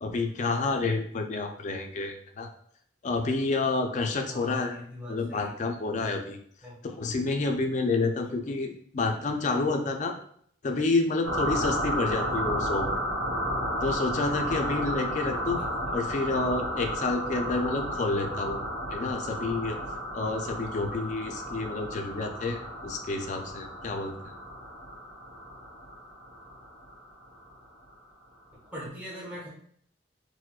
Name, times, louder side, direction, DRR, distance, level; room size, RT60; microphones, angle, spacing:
voice 1, 0.0-2.5 3.0-4.8 5.1-6.4 6.8-10.1 10.6-12.9 13.8-15.6 15.9-18.6 18.9-19.8 20.1-24.1, left 3 dB, 40° left, 5 dB, 0.3 m, -29 dB
voice 2, 4.3-5.5 6.6-6.8 8.2-8.3 15.5-15.7 15.9-16.0 28.7-29.5, equal, 10° right, -6 dB, 0.9 m, -41 dB
sound 1, 11.2-27.5, equal, 85° right, 0.9 m, -33 dB
4.5 x 2.1 x 2.3 m, 0.63 s
head